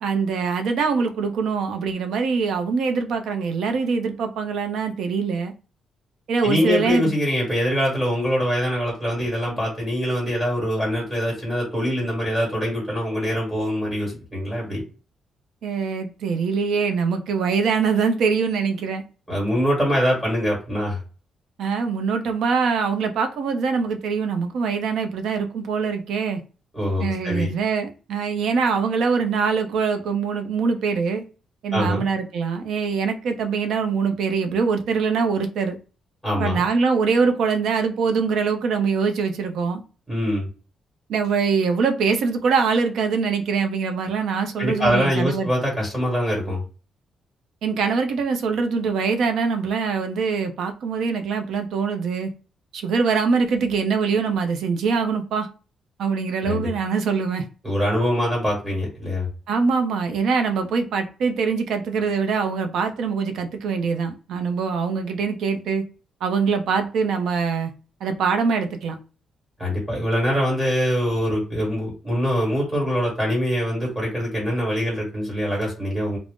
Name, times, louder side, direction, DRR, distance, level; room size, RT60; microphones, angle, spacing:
voice 1, 0.0-5.5 6.3-7.1 15.6-19.0 21.6-26.4 27.0-31.2 31.6-35.7 36.4-39.8 41.1-45.5 47.6-52.3 52.7-55.5 56.0-57.4 59.5-65.8 66.2-67.7 68.0-69.0, right 5 dB, 70° right, 0.5 m, -23 dB
voice 2, 6.4-14.8 19.3-21.0 26.7-27.5 31.7-32.0 36.2-36.6 40.1-40.5 44.6-46.6 56.4-56.7 57.6-59.3 69.6-76.2, equal, 5° right, 1.2 m, -23 dB
2.5 x 2.0 x 3.4 m
cardioid pair, 175°, 0 cm